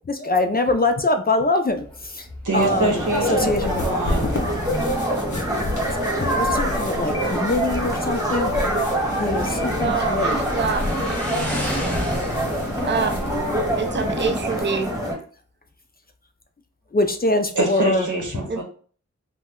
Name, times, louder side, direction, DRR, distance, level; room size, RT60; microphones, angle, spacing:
voice 1, 0.0-2.3 2.5-3.0 3.3-4.3 5.8-8.5 9.2-10.4 16.9-18.1, left 2 dB, 30° left, 6 dB, 0.4 m, -23 dB
Motorcycle, 1.7-14.6, equal, 5° left, 0.7 m, -36 dB
voice 2, 2.4-4.3 17.5-18.6, right 2 dB, 80° right, -1 dB, 0.9 m, -25 dB
sound 1, 2.5-15.2, equal, 10° right, 1.0 m, -25 dB
sound 2, 3.4-14.3, left 1 dB, 80° left, 0.7 m, -33 dB
voice 3, 9.8-11.1 11.5-11.8 12.8-13.4 13.8-14.9 18.5-18.6, right 5 dB, 40° right, 6 dB, 0.4 m, -26 dB
2.7 x 2.1 x 3.5 m, 0.43 s
wide cardioid pair, 50°, 30 cm